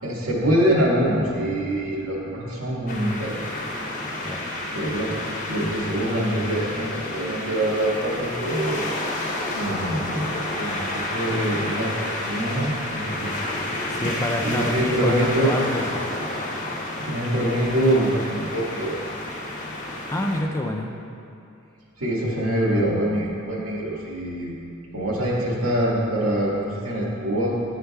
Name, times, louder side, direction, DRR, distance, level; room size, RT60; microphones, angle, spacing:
voice 1, 0.0-3.4 4.7-5.2 5.5-9.0 9.5-13.3 14.4-15.5 17.0-19.1 22.0-24.6 24.9-27.6, right 1 dB, 85° right, -5 dB, 1.6 m, -24 dB
sound 1, 2.9-20.4, left 1 dB, 35° left, 0.8 m, -30 dB
voice 2, 13.9-16.0 20.1-20.9, left 1 dB, 15° left, 1 dB, 0.4 m, -27 dB
11.0 x 6.4 x 2.3 m, 2.6 s
head